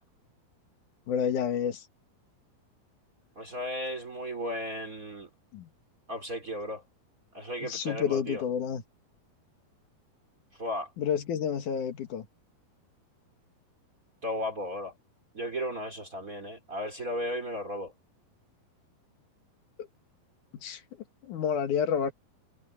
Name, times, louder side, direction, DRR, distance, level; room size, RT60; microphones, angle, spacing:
voice 1, 1.1-1.8 5.5-5.7 7.6-8.8 11.0-12.3 20.6-20.8 21.2-22.1, left 8 dB, 60° left, 2.7 m, -29 dB
voice 2, 3.4-5.3 6.1-6.8 7.3-8.4 10.5-10.9 14.2-14.9 15.3-17.9, left 1 dB, 20° right, 3.5 m, -35 dB
omnidirectional pair, 4.5 m